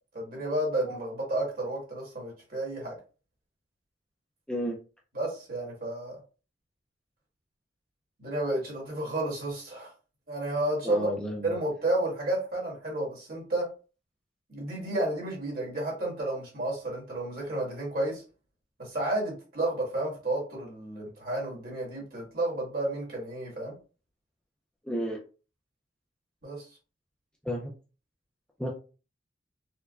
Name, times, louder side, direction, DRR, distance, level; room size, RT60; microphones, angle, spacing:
voice 1, 0.1-3.0 5.1-6.2 8.2-9.9 10.3-11.1 11.4-13.7 14.5-18.2 18.8-23.8 26.4-26.7, right 1 dB, 50° right, -3 dB, 1.6 m, -31 dB
voice 2, 10.8-11.5 24.8-25.2 27.4-27.7 28.6-28.7, equal, 5° left, -2 dB, 0.5 m, -31 dB
4.4 x 2.2 x 2.4 m, 0.35 s
head